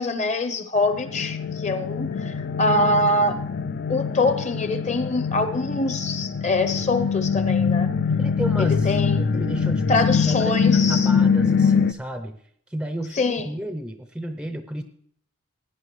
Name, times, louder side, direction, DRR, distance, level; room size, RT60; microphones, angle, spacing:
voice 1, 0.0-3.4 3.9-7.9 8.6-9.2 9.9-11.1 13.2-13.4, left 2 dB, 35° left, 9 dB, 0.8 m, -24 dB
sound 1, 0.8-11.9, left 6 dB, 50° left, 0.4 m, -23 dB
voice 2, 8.1-12.4 12.7-14.8, right 1 dB, 5° right, 8 dB, 0.5 m, -32 dB
16.5 x 9.8 x 3.1 m, 0.64 s
head